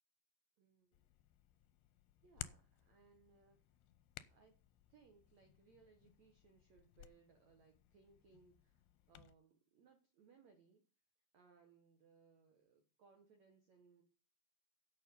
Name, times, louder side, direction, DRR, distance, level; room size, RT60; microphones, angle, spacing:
voice 1, 0.6-1.1 2.2-3.6 4.3-4.6 4.9-10.8 11.3-14.0, right 5 dB, 75° right, 5 dB, 1.6 m, -68 dB
Hands, 0.9-9.3, left 14 dB, 80° left, 2.5 m, -58 dB
11.0 x 6.6 x 5.3 m, 0.36 s
omnidirectional pair, 5.2 m